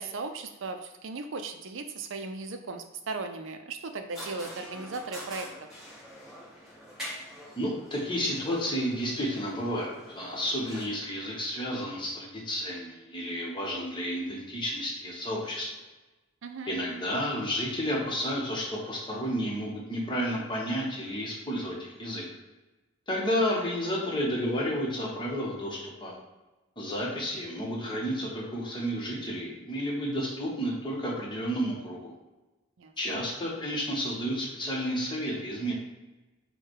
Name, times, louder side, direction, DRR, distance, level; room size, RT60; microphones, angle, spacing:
voice 1, 0.0-5.5 16.4-16.7 32.8-33.2, right 3 dB, 60° right, 7 dB, 0.5 m, -37 dB
sound 1, 4.1-10.8, equal, 5° right, 1.3 m, -45 dB
voice 2, 7.6-15.7 16.7-22.2 23.1-26.1 26.8-32.1 33.0-35.7, equal, 25° left, -3 dB, 1.0 m, -31 dB
4.7 x 2.2 x 4.6 m, 1.1 s
head